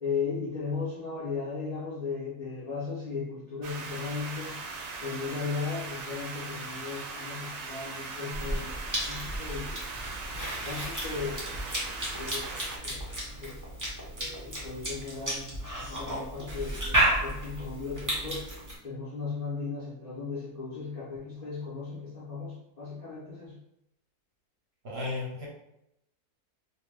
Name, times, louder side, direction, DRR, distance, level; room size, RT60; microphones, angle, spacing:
voice 1, 0.0-4.6 5.0-9.8 10.3-13.6 14.2-18.4 18.8-23.6, left 4 dB, 65° left, -8 dB, 0.4 m, -37 dB
sound 1, 3.6-12.8, right 3 dB, 85° right, 1.1 m, -39 dB
Cough / Chewing mastication, 8.3-18.8, right 1 dB, 30° right, 0.3 m, -33 dB
voice 2, 24.8-25.5, left 3 dB, 55° right, -5 dB, 0.8 m, -34 dB
2.6 x 2.1 x 3.2 m, 0.82 s
omnidirectional pair, 1.7 m